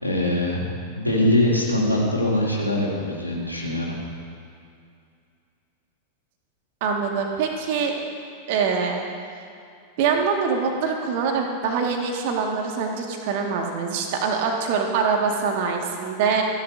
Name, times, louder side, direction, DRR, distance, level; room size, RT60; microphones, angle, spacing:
voice 1, 0.0-0.7 1.0-3.9, left 1 dB, 90° left, -4 dB, 2.7 m, -22 dB
voice 2, 6.8-7.9 8.5-9.0 10.0-16.4, right 5 dB, 50° right, 1 dB, 1.9 m, -24 dB
28.0 x 11.5 x 2.7 m, 2.4 s
figure-of-eight pair, 90°, 0 cm